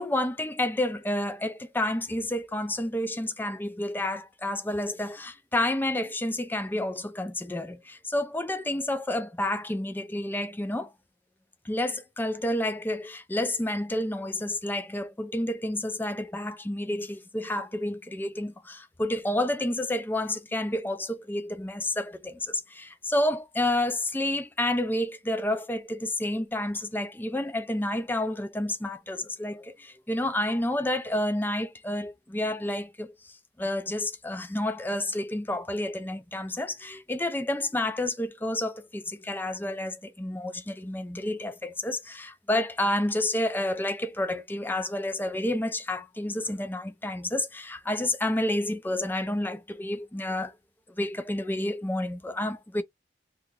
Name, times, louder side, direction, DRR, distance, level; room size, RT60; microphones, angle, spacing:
voice 1, 0.0-10.9 11.6-33.1 33.6-50.5 51.0-52.8, left 1 dB, 10° left, 0.5 m, -30 dB
2.9 x 2.5 x 3.7 m
head